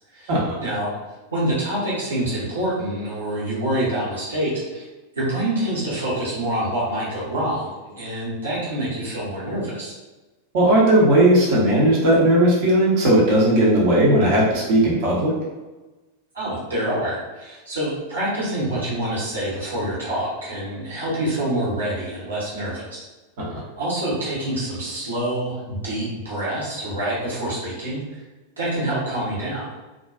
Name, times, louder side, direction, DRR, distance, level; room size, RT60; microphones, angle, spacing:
voice 1, 1.3-4.9 5.1-9.9 16.3-23.0 23.8-28.2 28.6-29.7, right 1 dB, 70° right, -8 dB, 1.1 m, -26 dB
voice 2, 10.5-15.3 23.4-23.6, right 1 dB, 50° right, -5 dB, 0.8 m, -17 dB
2.4 x 2.3 x 2.4 m, 1.2 s
figure-of-eight pair, 90°, 0 cm